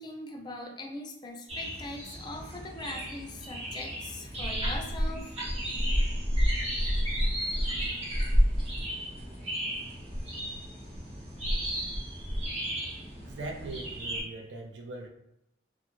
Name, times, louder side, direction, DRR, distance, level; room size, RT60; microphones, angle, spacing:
voice 1, 0.0-5.3, left 2 dB, 25° left, 2 dB, 0.4 m, -41 dB
sound 1, 1.5-14.2, equal, 35° right, 0.8 m, -31 dB
voice 2, 13.2-15.1, right 2 dB, 80° right, 1 dB, 0.4 m, -40 dB
2.4 x 2.3 x 3.0 m, 0.86 s
head